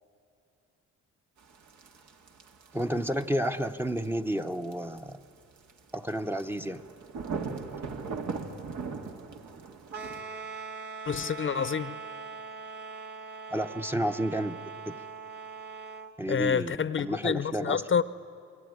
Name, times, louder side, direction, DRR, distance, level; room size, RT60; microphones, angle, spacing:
sound 1, 1.4-10.2, right 5 dB, 70° right, 2.1 m, -40 dB
voice 1, 2.7-5.2 5.9-6.8 13.5-14.6 14.9-15.0 16.2-17.8, right 1 dB, 5° right, 0.9 m, -31 dB
sound 2, 9.9-16.1, right 5 dB, 35° right, 1.7 m, -41 dB
voice 2, 11.1-12.0 16.3-18.0, left 7 dB, 40° left, 0.8 m, -28 dB
28.5 x 21.5 x 9.6 m
cardioid pair, 90°, 30 cm